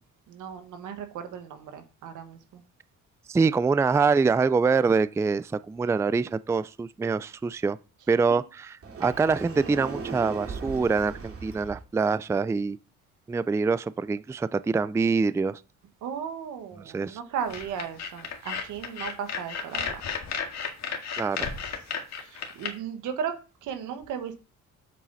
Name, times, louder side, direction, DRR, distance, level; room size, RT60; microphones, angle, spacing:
voice 1, 0.3-2.6 16.0-20.0 22.1-24.4, right 8 dB, 90° right, 1.6 m, -36 dB
voice 2, 3.3-7.8 8.1-8.7 9.0-12.8 13.3-15.6 16.9-17.2 21.2-21.5, right 4 dB, 10° right, 0.3 m, -25 dB
Sliding door, 8.8-11.8, right 5 dB, 50° right, 2.5 m, -38 dB
sound 1, 17.5-22.7, left 6 dB, 60° left, 1.9 m, -33 dB
7.6 x 7.3 x 4.1 m
cardioid pair, 90°, 30 cm